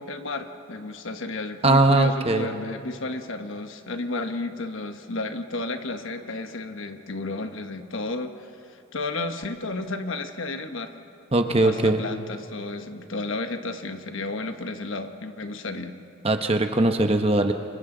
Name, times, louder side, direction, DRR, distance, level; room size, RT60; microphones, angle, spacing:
voice 1, 0.0-8.3 8.7-10.9 11.6-16.0, left 2 dB, 65° left, 7 dB, 1.2 m, -32 dB
voice 2, 1.6-2.5 11.3-12.0 16.2-17.5, right 2 dB, 25° right, 6 dB, 0.9 m, -20 dB
29.0 x 25.0 x 3.9 m, 2.7 s
head